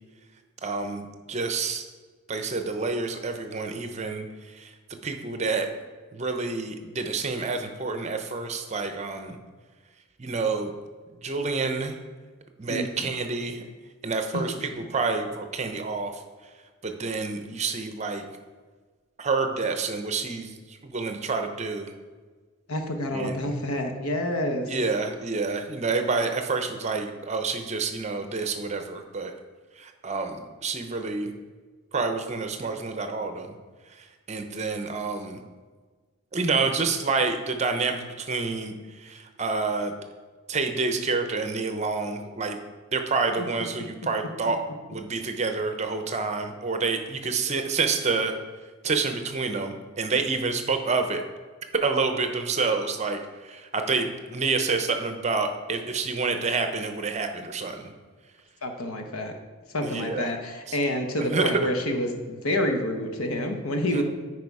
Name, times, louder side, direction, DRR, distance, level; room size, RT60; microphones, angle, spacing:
voice 1, 0.6-1.9 2.3-4.3 4.5-4.7 5.0-5.7 6.1-9.4 10.2-10.7 11.2-12.0 12.6-13.7 14.0-16.2 16.8-18.3 19.2-20.5 20.8-21.9 23.1-23.5 24.6-29.3 29.8-31.3 31.9-33.5 34.0-35.4 36.3-39.9 40.5-42.6 42.9-44.6 44.9-48.3 48.8-51.2 51.8-57.9 59.8-60.3 60.7-60.8 61.2-61.5 63.9-64.0, right 4 dB, 30° right, 6 dB, 0.6 m, -28 dB
voice 2, 12.7-13.1 14.3-14.4 22.7-24.7 43.8-43.9 58.6-59.3 59.7-64.0, left 1 dB, 90° left, 4 dB, 1.1 m, -28 dB
9.4 x 4.8 x 4.8 m, 1.4 s
head